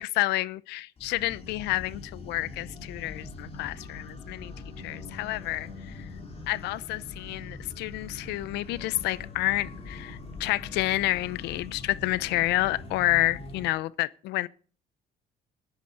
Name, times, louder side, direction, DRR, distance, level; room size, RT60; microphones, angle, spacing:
voice 1, 0.0-4.5 4.8-5.7 6.5-14.5, left 18 dB, 90° left, 0.8 m, -29 dB
sound 1, 1.0-13.7, left 3 dB, 35° left, 3.6 m, -42 dB
14.0 x 10.5 x 6.6 m
cardioid pair, 110°, 17 cm